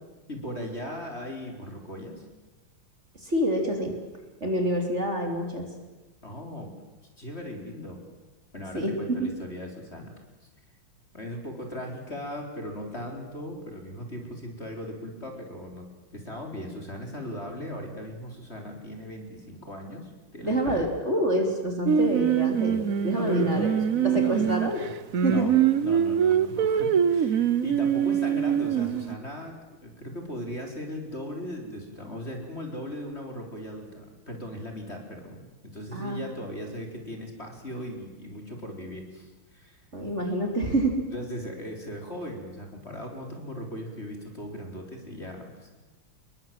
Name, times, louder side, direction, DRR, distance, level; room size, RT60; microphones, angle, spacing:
voice 1, 0.3-2.3 6.2-6.7 7.2-8.0 8.5-10.1 11.1-20.9 23.1-24.9 25.2-25.5 25.8-39.8 41.1-45.7, equal, 30° left, 2 dB, 4.4 m, -38 dB
voice 2, 3.2-4.0 4.4-5.7 8.7-9.3 20.4-23.7 24.1-24.8 25.2-25.6 35.9-36.2 39.9-41.1, right 1 dB, 30° right, 3 dB, 3.7 m, -27 dB
Singing, 21.9-29.1, right 8 dB, 50° right, 1.1 m, -24 dB
28.0 x 22.5 x 7.6 m, 1.2 s
omnidirectional pair, 2.4 m